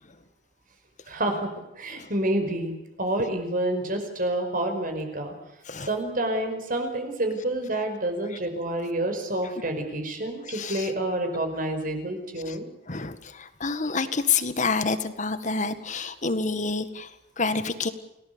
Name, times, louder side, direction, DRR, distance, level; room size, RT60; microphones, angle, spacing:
voice 1, 1.1-2.7 3.0-5.3 5.8-12.7, right 1 dB, 50° right, 5 dB, 5.2 m, -28 dB
voice 2, 10.4-10.9 12.4-12.6 12.9-17.9, left 4 dB, 45° left, 11 dB, 1.8 m, -28 dB
29.5 x 18.5 x 6.9 m, 0.90 s
head